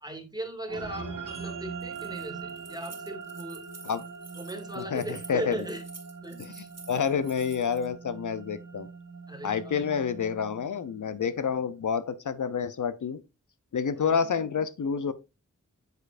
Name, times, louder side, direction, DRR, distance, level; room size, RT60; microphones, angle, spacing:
voice 1, 0.0-3.7 4.4-5.8 6.2-6.7 9.3-9.8 13.9-14.2, right 1 dB, 15° right, 2.0 m, -38 dB
sound 1, 0.7-11.3, right 5 dB, 90° right, 1.9 m, -42 dB
Keys jangling, 1.8-7.9, right 4 dB, 55° right, 1.6 m, -49 dB
voice 2, 4.8-5.6 6.4-6.5 6.9-8.9 9.4-13.2 13.7-15.1, left 6 dB, 70° left, 0.6 m, -28 dB
8.1 x 6.7 x 2.5 m
wide cardioid pair, 55°, 31 cm